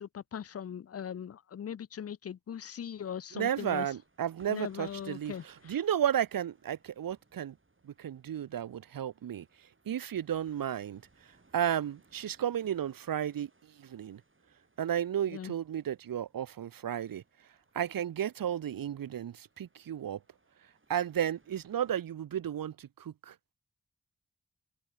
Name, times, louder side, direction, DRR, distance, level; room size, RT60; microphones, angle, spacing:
voice 1, 0.0-3.9 4.5-5.8 15.3-15.5, left 8 dB, 45° left, 0.4 m, -40 dB
voice 2, 3.3-7.5 7.8-9.5 9.9-14.2 14.8-17.2 17.7-20.2 20.9-23.3, right 10 dB, 90° right, 0.6 m, -33 dB
sound 1, 3.9-21.9, right 3 dB, 35° right, 5.1 m, -67 dB
open air
wide cardioid pair, 90°, 33 cm